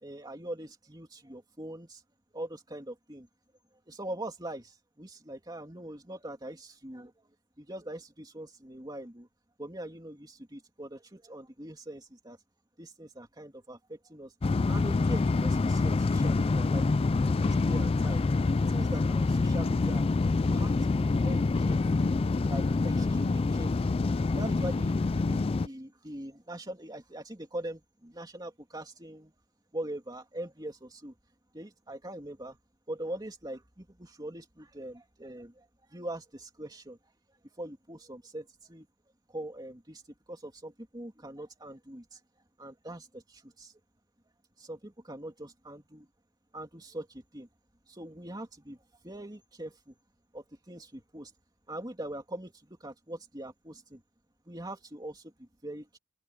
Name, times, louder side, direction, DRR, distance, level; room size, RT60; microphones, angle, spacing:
voice 1, 0.0-2.0 2.3-3.3 3.9-7.1 7.6-9.3 9.6-12.4 12.8-14.3 14.7-16.9 17.2-18.2 18.7-20.0 20.4-22.1 22.5-24.0 24.4-29.3 29.7-31.1 31.5-32.6 32.9-37.0 37.6-38.9 39.3-40.0 40.3-42.2 42.6-43.7 44.6-46.1 46.5-47.5 47.9-49.9 50.3-51.3 51.7-54.0 54.5-56.0, right 1 dB, 20° right, 3.0 m, -42 dB
sound 1, 14.4-25.7, left 3 dB, 25° left, 0.3 m, -26 dB
open air
head